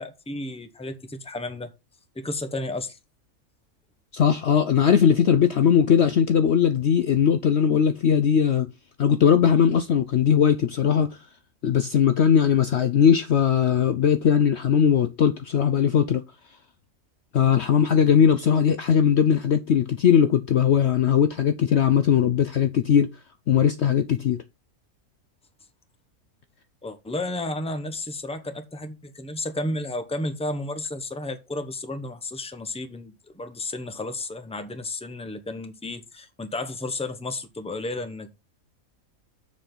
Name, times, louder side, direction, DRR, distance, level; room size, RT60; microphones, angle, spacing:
voice 1, 0.0-1.7 2.1-3.0 26.8-38.3, left 2 dB, 5° left, 0.8 m, -32 dB
voice 2, 4.1-8.7 9.0-11.1 11.6-16.2 17.3-23.1 23.5-24.4, left 8 dB, 60° left, 0.8 m, -19 dB
7.2 x 7.1 x 4.0 m
omnidirectional pair, 1.5 m